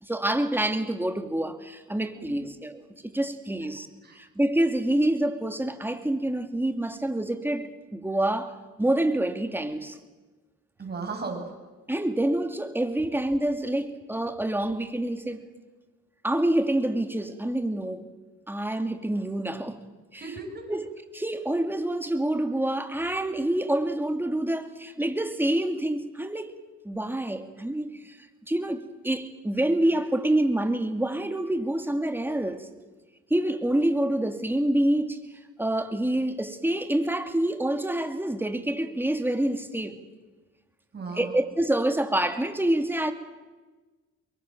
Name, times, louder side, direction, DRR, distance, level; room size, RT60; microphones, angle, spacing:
voice 1, 0.0-3.9 4.1-8.5 8.8-10.0 11.9-15.4 16.2-18.1 18.5-19.8 20.1-20.2 20.7-20.8 21.1-26.5 26.8-28.2 28.5-32.7 33.3-35.2 35.6-40.0 41.1-43.1, right 1 dB, 5° right, 2.5 m, -27 dB
voice 2, 2.1-2.5 4.0-4.2 10.8-11.5 20.1-20.8 40.9-41.3, right 4 dB, 35° right, 7.5 m, -36 dB
24.0 x 22.5 x 7.7 m
cardioid pair, 90°, 30 cm